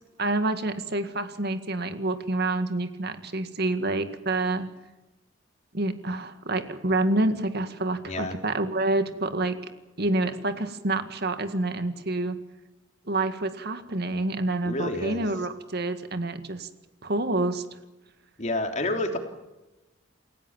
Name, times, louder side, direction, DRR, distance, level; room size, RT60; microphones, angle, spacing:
voice 1, 0.2-4.7 5.7-9.6 10.0-12.4 13.1-16.7 17.0-17.6, right 2 dB, 55° right, 9 dB, 2.0 m, -27 dB
voice 2, 8.0-8.4 14.6-15.3 18.4-19.2, left 1 dB, 35° left, 5 dB, 3.3 m, -29 dB
29.0 x 16.5 x 7.3 m, 1.0 s
head